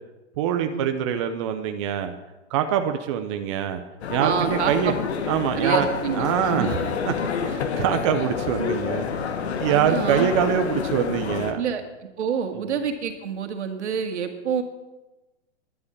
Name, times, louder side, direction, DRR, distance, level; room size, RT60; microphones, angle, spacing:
voice 1, 0.4-2.1 2.5-3.8 4.1-4.9 5.3-5.9 6.1-6.8 7.1-7.2 7.5-11.6 12.5-12.7, right 9 dB, 25° right, 6 dB, 0.6 m, -24 dB
sound 1, 4.0-11.5, left 6 dB, 65° left, 1.6 m, -28 dB
voice 2, 4.2-4.9 5.5-6.7 9.7-10.3 11.5-11.8 12.2-14.6, right 7 dB, 70° right, 5 dB, 2.0 m, -27 dB
11.0 x 8.3 x 8.2 m, 1.1 s
hypercardioid pair, 155°, 36 cm